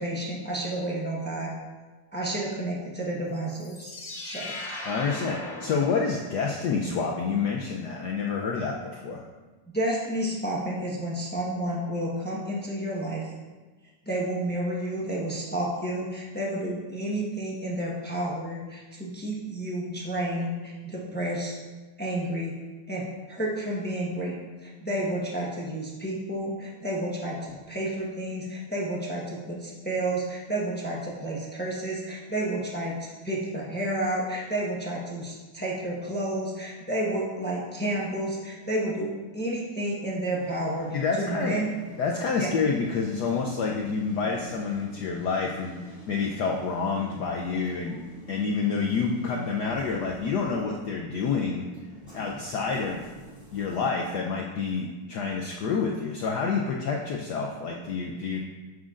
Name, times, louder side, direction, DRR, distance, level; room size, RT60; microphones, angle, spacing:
voice 1, 0.0-1.5 2.1-3.9 4.2-4.5 9.7-13.3 14.0-21.5 22.0-22.5 22.9-27.4 27.7-32.9 33.2-41.7 42.4-42.5, right 1 dB, 10° left, -4 dB, 0.4 m, -31 dB
sound 1, 3.5-6.6, left 2 dB, 35° left, 1.2 m, -39 dB
voice 2, 4.9-9.2 40.9-41.6 42.0-48.0 48.3-51.7 52.1-53.1 53.5-58.4, left 5 dB, 75° left, 0 dB, 0.9 m, -28 dB
sound 2, 40.3-53.8, left 1 dB, 5° right, 1.8 m, -44 dB
9.4 x 6.3 x 2.5 m, 1.3 s
omnidirectional pair, 2.4 m